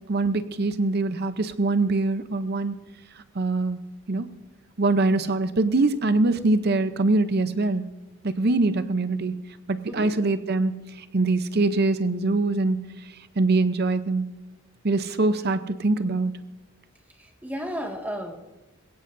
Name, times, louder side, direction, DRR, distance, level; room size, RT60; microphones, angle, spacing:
voice 1, 0.1-2.8 3.3-3.8 4.1-4.3 4.8-7.8 8.2-9.4 9.7-10.8 11.1-12.9 13.4-14.3 14.8-16.3, right 2 dB, 50° right, 11 dB, 0.7 m, -23 dB
voice 2, 17.2-18.4, equal, 10° right, 1 dB, 1.8 m, -33 dB
22.0 x 17.0 x 2.6 m, 1.0 s
head